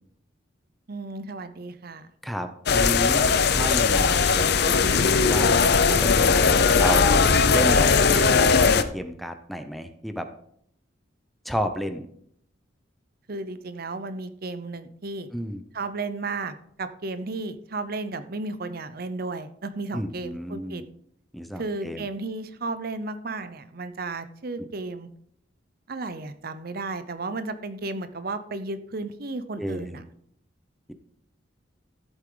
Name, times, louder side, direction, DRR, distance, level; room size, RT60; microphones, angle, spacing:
voice 1, 0.9-2.1 13.3-15.3 15.7-20.8 21.6-25.1 25.9-30.0, right 3 dB, 50° right, 11 dB, 0.7 m, -33 dB
voice 2, 2.2-5.7 6.0-6.4 6.8-10.3 11.4-12.1 15.3-15.6 19.9-20.8 21.3-22.1 24.6-24.7 29.6-30.0, equal, ahead, 8 dB, 0.7 m, -32 dB
The Razing of Aulkozt'Ineh, 2.7-8.8, left 5 dB, 55° left, 0.6 m, -19 dB
14.0 x 8.1 x 3.9 m, 0.68 s
head